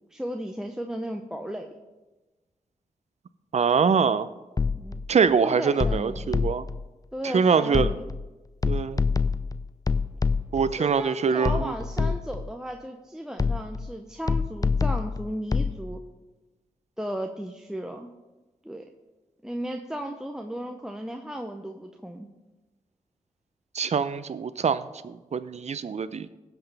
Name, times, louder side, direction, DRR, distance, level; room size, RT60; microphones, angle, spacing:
voice 1, 0.1-1.8 4.7-6.4 7.1-8.0 10.8-16.0 17.0-18.1 18.6-18.9 19.4-22.3, equal, 5° right, 4 dB, 0.8 m, -35 dB
voice 2, 3.5-4.3 5.1-6.7 7.2-7.9 8.6-9.0 10.5-12.1 23.7-26.3, right 6 dB, 50° right, 14 dB, 0.6 m, -24 dB
sound 1, 4.6-5.1 5.8-6.8 7.7-8.3 8.6-10.7 11.4-12.5 13.4-13.9 14.3-15.8, left 4 dB, 25° left, 0.5 m, -26 dB
16.0 x 6.0 x 3.4 m, 1.1 s
supercardioid pair, 45°, 14 cm